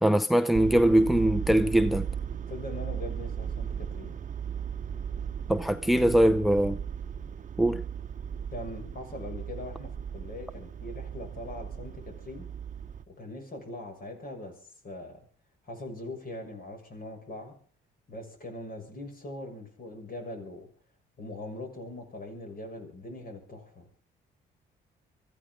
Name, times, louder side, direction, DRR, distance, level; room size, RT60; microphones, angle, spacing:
voice 1, 0.0-2.1 5.5-6.8 7.6-7.8, right 1 dB, ahead, 0.7 m, -22 dB
sound 1, 0.5-13.0, right 8 dB, 40° right, 1.0 m, -36 dB
voice 2, 2.5-4.2 8.5-12.5 13.1-15.2 15.6-17.6 18.1-20.7 21.2-24.0, left 2 dB, 45° left, 6.5 m, -41 dB
24.0 x 14.5 x 3.9 m
cardioid pair, 90°, 20 cm